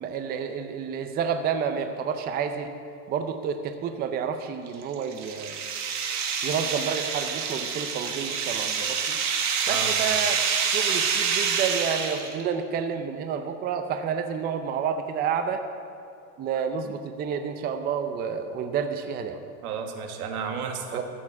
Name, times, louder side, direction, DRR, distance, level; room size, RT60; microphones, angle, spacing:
voice 1, 0.0-2.7 3.1-5.6 6.4-9.2 9.7-10.4 10.7-15.6 16.4-19.4 20.9-21.0, right 7 dB, 20° right, 8 dB, 0.6 m, -29 dB
sound 1, 4.7-12.4, right 6 dB, 40° right, 1.5 m, -27 dB
voice 2, 9.7-10.1 19.3-21.0, right 6 dB, 80° right, 4 dB, 1.7 m, -33 dB
14.0 x 7.2 x 6.1 m, 2.7 s
supercardioid pair, 130°, 43 cm